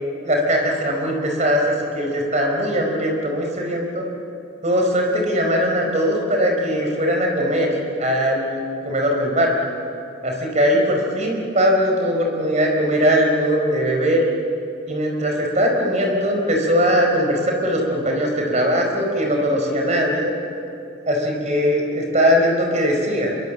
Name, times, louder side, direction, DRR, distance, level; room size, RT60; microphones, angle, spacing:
voice 1, 0.2-4.0 4.6-7.7 8.0-8.6 8.8-9.5 10.2-14.2 14.9-20.3 21.1-23.3, equal, 35° right, 1 dB, 4.8 m, -20 dB
25.5 x 23.0 x 7.6 m, 2.7 s
head